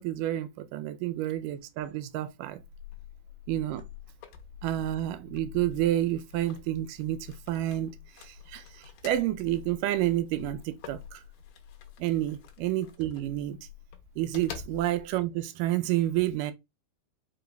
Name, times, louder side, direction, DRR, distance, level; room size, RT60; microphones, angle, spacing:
voice 1, 0.0-2.6 3.5-3.8 4.6-11.2 12.0-13.6 14.2-16.5, right 14 dB, 90° right, 2.2 m, -30 dB
sound 1, 2.6-15.2, left 9 dB, 90° left, 2.3 m, -47 dB
5.4 x 3.9 x 2.3 m
omnidirectional pair, 3.7 m